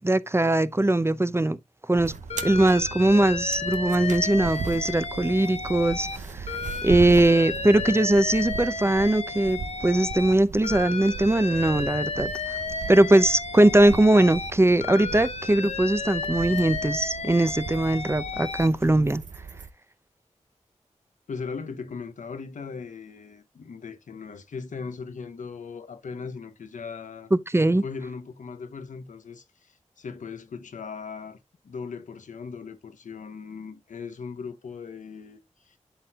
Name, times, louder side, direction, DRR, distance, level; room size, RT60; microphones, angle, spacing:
voice 1, 0.0-1.6 1.9-2.1 2.4-6.5 6.8-12.3 12.9-19.2 27.3-27.8, right 1 dB, 20° right, 0.7 m, -21 dB
sound 1, 1.9-19.7, right 5 dB, 80° right, 0.7 m, -38 dB
Alarm, 2.3-6.2 6.5-10.3 10.6-14.5 14.8-18.7, left 4 dB, 55° left, 0.9 m, -33 dB
voice 2, 21.3-27.3 27.8-31.4 31.6-35.8, left 5 dB, 85° left, 0.9 m, -38 dB
11.5 x 4.2 x 2.4 m
cardioid pair, 45°, 13 cm